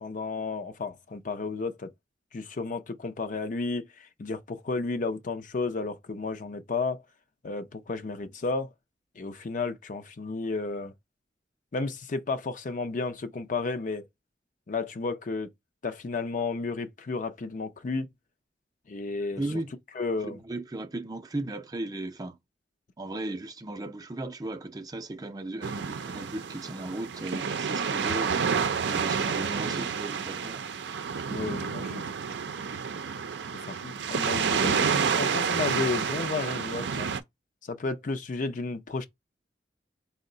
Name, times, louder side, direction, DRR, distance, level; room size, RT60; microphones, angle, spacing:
voice 1, 0.0-1.9 2.3-7.0 7.4-8.7 9.2-10.9 11.7-14.1 14.7-15.5 15.8-18.1 18.9-19.4 20.0-20.4 31.3-32.1 33.5-37.1 37.6-39.1, left 3 dB, 45° left, 0.5 m, -32 dB
voice 2, 19.4-19.7 20.2-22.4 23.0-28.4 28.9-30.7, right 2 dB, 20° right, 0.5 m, -36 dB
sound 1, 25.6-37.2, right 6 dB, 75° right, 0.5 m, -29 dB
4.5 x 2.1 x 3.8 m
head